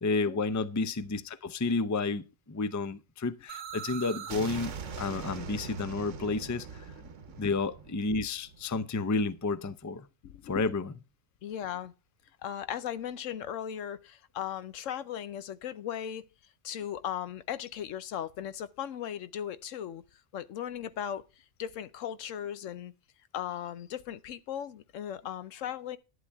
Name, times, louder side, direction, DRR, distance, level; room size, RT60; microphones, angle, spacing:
voice 1, 0.0-6.9 7.4-10.1 10.4-10.9, left 3 dB, 25° left, 0.4 m, -31 dB
sound 1, 3.5-9.2, right 6 dB, 75° right, 1.3 m, -41 dB
voice 2, 10.2-10.6 11.4-11.9 12.4-16.2 16.6-20.0 20.3-22.9 23.3-26.0, left 10 dB, 90° left, 1.1 m, -37 dB
11.0 x 10.0 x 3.5 m
omnidirectional pair, 1.3 m